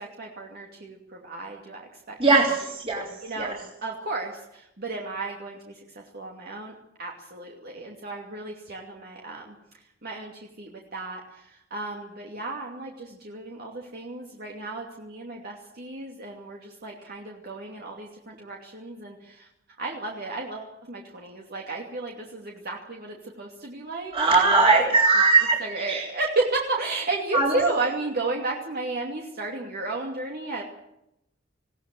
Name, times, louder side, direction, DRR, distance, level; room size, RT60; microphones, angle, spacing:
voice 1, 0.0-2.2 3.2-3.5 3.8-6.7 7.0-9.5 10.0-19.5 19.8-24.7 25.6-30.6, right 2 dB, 55° right, -1 dB, 2.7 m, -33 dB
voice 2, 2.2-3.1 3.4-3.5 24.1-25.6 25.9-26.0 27.3-27.5, right 3 dB, 30° right, -3 dB, 3.8 m, -20 dB
20.0 x 17.5 x 7.8 m, 0.84 s
head